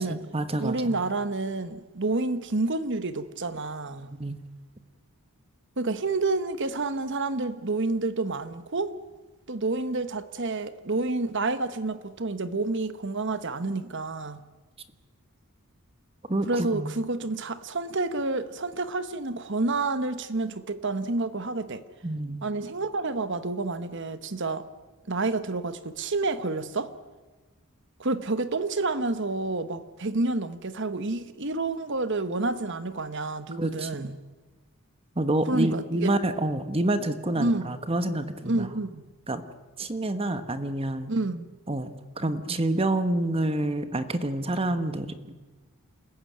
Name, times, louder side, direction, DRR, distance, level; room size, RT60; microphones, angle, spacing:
voice 1, 0.1-1.0 4.1-4.4 16.3-16.9 22.0-22.5 33.6-34.1 35.1-38.7 39.3-39.4 39.8-41.1 41.7-45.3, right 1 dB, 25° right, 1.2 m, -28 dB
voice 2, 0.6-4.1 5.8-8.9 9.5-14.4 16.5-21.8 22.4-24.7 25.1-26.9 28.0-34.1 35.5-36.1 37.4-37.7 38.4-39.0 41.1-41.5, right 3 dB, 55° right, 1.2 m, -29 dB
27.5 x 15.0 x 9.4 m
head